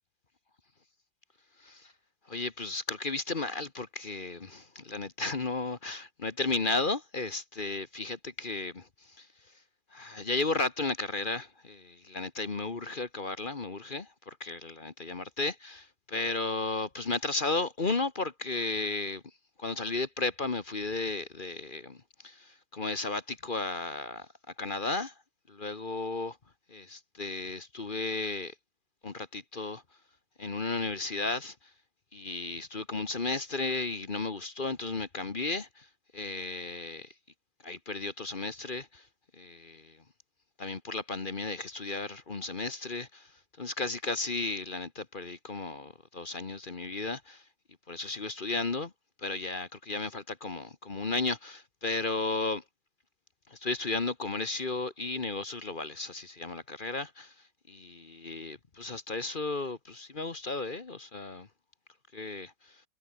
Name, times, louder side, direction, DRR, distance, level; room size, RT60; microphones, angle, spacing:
voice 1, 1.6-1.9 2.3-9.3 9.9-19.2 19.6-24.3 24.6-25.1 25.5-26.4 26.7-28.5 29.0-29.8 30.4-31.5 32.1-35.9 36.1-37.1 37.6-39.1 39.3-40.0 40.6-43.3 43.6-47.4 47.9-48.9 49.2-52.6 53.5-57.3 57.7-61.5 62.1-62.8, left 3 dB, 30° left, 1.2 m, -34 dB
omnidirectional pair, 2.1 m